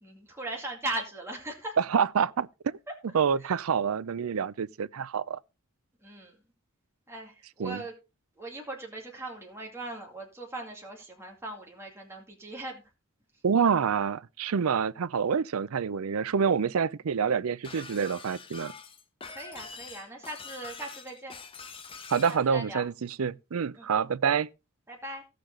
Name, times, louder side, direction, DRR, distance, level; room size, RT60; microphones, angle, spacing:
voice 1, 0.0-1.8 6.0-6.4 7.1-7.9 8.4-12.8 19.3-21.4 22.5-22.8 23.8-23.9 24.9-25.2, right 2 dB, 10° right, 2.4 m, -39 dB
voice 2, 1.8-2.7 3.1-5.4 7.6-7.8 13.4-18.7 22.1-24.5, right 6 dB, 85° right, 0.5 m, -27 dB
Shatter, 17.6-22.4, left 5 dB, 25° left, 1.0 m, -45 dB
16.5 x 6.8 x 3.8 m
head